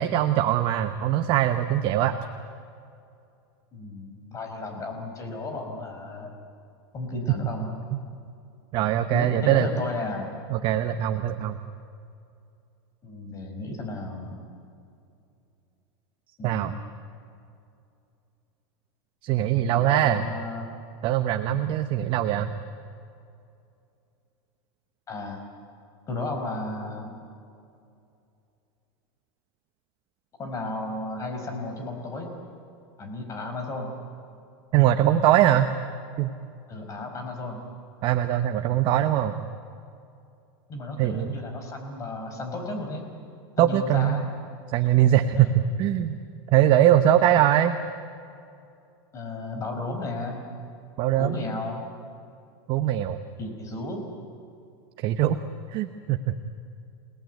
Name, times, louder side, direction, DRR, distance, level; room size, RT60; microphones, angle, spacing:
voice 1, 0.0-2.1 8.7-9.7 10.5-11.6 16.4-16.7 19.2-20.2 21.0-22.5 34.7-35.7 36.2-36.3 38.0-39.4 41.0-41.3 43.6-44.2 44.7-46.1 46.5-47.8 51.0-51.4 52.7-53.2 55.0-55.4 55.7-56.4, right 12 dB, 40° right, 8 dB, 1.0 m, -22 dB
voice 2, 3.7-6.3 6.9-7.7 9.1-10.3 13.0-14.4 16.4-16.7 19.7-20.7 25.1-25.4 26.1-27.2 30.4-32.3 33.0-33.9 36.7-37.6 40.7-43.0 43.6-44.3 45.4-45.5 49.1-50.4 51.2-51.8 53.4-54.0, left 2 dB, 25° left, 4 dB, 5.2 m, -33 dB
28.5 x 19.0 x 9.4 m, 2.6 s
supercardioid pair, 145°, 13 cm